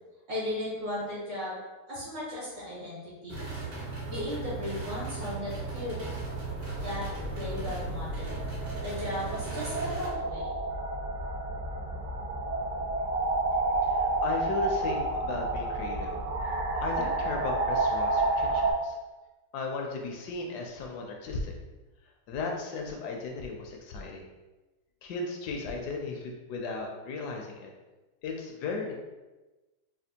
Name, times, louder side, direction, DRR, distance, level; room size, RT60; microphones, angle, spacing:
voice 1, 0.3-1.6 1.9-3.4 4.1-6.2 6.8-7.1 7.3-8.3 8.8-10.5, left 1 dB, 65° right, -8 dB, 2.1 m, -36 dB
sound 1, 3.3-10.1, right 4 dB, 45° right, 0.9 m, -37 dB
sound 2, 5.5-18.7, right 2 dB, 85° right, 1.4 m, -31 dB
voice 2, 13.9-16.1 16.4-16.6 16.8-19.0 19.5-21.5 22.3-24.3 25.0-27.7 28.2-28.9, left 3 dB, 75° left, 1 dB, 1.1 m, -36 dB
4.2 x 2.3 x 2.7 m, 1.1 s
omnidirectional pair, 1.8 m